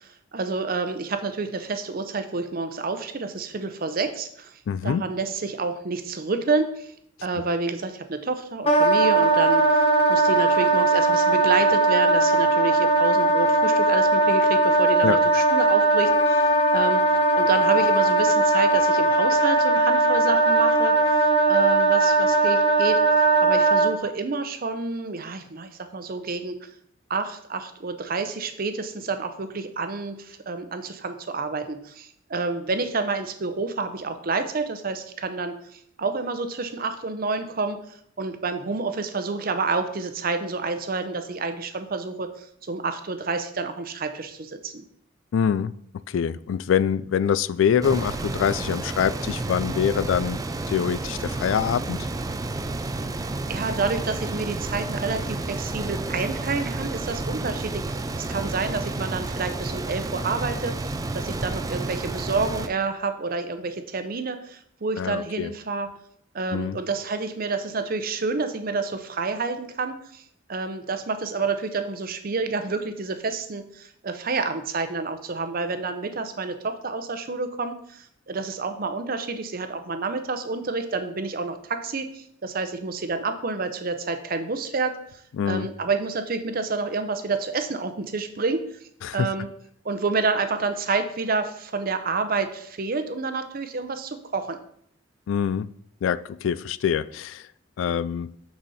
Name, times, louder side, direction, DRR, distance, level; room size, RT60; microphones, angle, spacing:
voice 1, 0.0-6.9 7.2-9.6 10.1-17.0 17.3-20.9 21.5-23.0 23.4-26.7 27.1-44.8 53.5-65.9 66.3-70.2 70.5-85.2 85.5-88.6 89.1-89.5 89.8-94.6, right 4 dB, 50° right, 9 dB, 0.7 m, -29 dB
voice 2, 4.7-5.0 15.0-15.2 45.3-45.7 46.1-50.4 50.7-52.0 65.0-65.5 66.5-66.8 85.4-85.7 89.0-89.3 95.3-95.7 96.0-97.4 97.8-98.4, left 8 dB, 80° left, 18 dB, 0.3 m, -24 dB
Wind instrument woodwind instrument, 8.6-23.9, right 2 dB, 30° left, 0.8 m, -19 dB
sound 1, 47.8-62.7, right 2 dB, 20° right, 0.3 m, -31 dB
6.4 x 6.1 x 4.1 m, 0.68 s
head